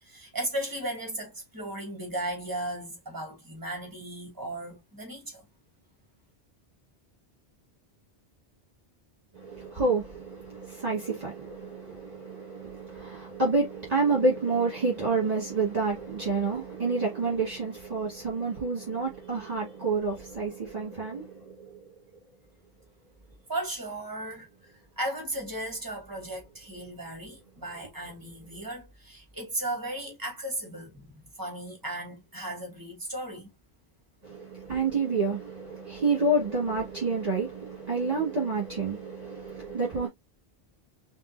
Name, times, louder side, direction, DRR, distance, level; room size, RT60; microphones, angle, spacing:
voice 1, 0.0-5.4 23.5-33.5, right 1 dB, 20° right, 2.2 m, -36 dB
voice 2, 9.3-21.9 34.2-40.1, right 3 dB, 35° right, 2.0 m, -29 dB
5.3 x 2.8 x 2.7 m
omnidirectional pair, 1.1 m